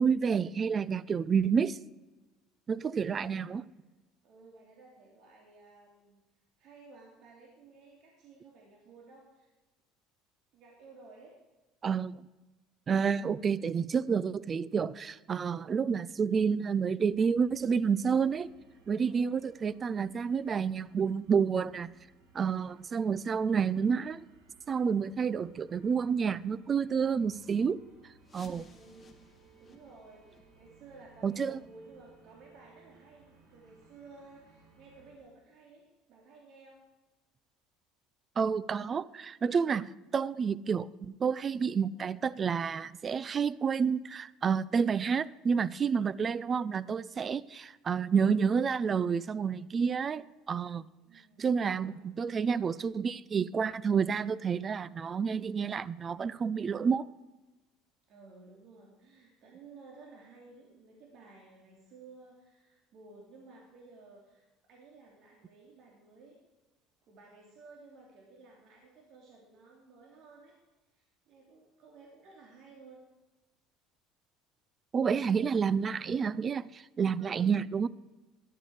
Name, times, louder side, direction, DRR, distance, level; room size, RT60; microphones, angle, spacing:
voice 1, 0.0-1.8 2.7-3.6 11.8-12.2 12.9-18.5 18.9-21.9 22.3-24.2 24.7-27.8 28.3-28.7 31.2-31.6 38.4-50.9 51.4-57.1 74.9-77.9, right 6 dB, 30° right, 0.4 m, -29 dB
voice 2, 2.8-3.5 4.2-6.2 6.6-9.5 10.5-11.3 13.1-13.4 19.0-19.4 28.6-29.1 29.6-36.8 50.8-52.0 58.1-66.4 67.0-70.6 70.9-73.0 77.2-77.5, right 3 dB, 60° right, 3.0 m, -55 dB
sound 1, 17.0-35.2, right 3 dB, 85° right, 4.0 m, -62 dB
sound 2, 28.2-33.8 34.2-34.3 34.8-34.9 35.5-35.6 36.2-36.3, left 2 dB, 25° left, 1.7 m, -60 dB
13.0 x 11.0 x 4.9 m
supercardioid pair, 105°, 0 cm